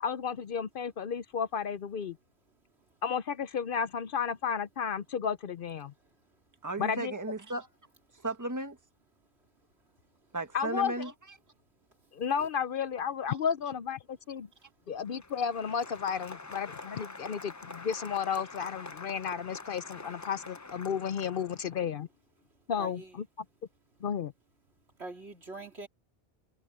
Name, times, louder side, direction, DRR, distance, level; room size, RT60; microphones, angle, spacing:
voice 1, 0.0-2.2 3.0-5.9 6.8-7.1 10.5-11.1 12.1-14.5 14.9-22.1 22.7-23.3 24.0-24.3, left 7 dB, 60° left, 0.8 m, -33 dB
voice 2, 6.6-7.7 8.2-8.8 10.3-11.1 13.3-13.4, right 2 dB, 15° right, 1.5 m, -34 dB
Applause, 14.9-21.8, left 3 dB, 20° left, 0.5 m, -46 dB
voice 3, 22.8-23.1 25.0-25.9, right 2 dB, 80° right, 3.7 m, -43 dB
omnidirectional pair, 1.1 m